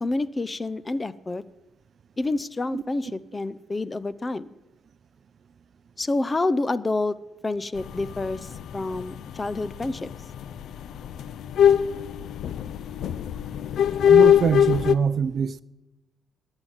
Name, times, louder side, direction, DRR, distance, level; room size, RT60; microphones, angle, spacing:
voice 1, 0.0-1.4 2.2-4.5 6.0-7.2 7.4-10.1, left 2 dB, 25° left, 0.6 m, -28 dB
sound 1, 7.8-14.9, left 9 dB, 70° left, 0.6 m, -21 dB
voice 2, 14.0-15.6, right 7 dB, 50° right, 0.5 m, -24 dB
11.5 x 8.9 x 9.8 m
cardioid pair, 90°, 0 cm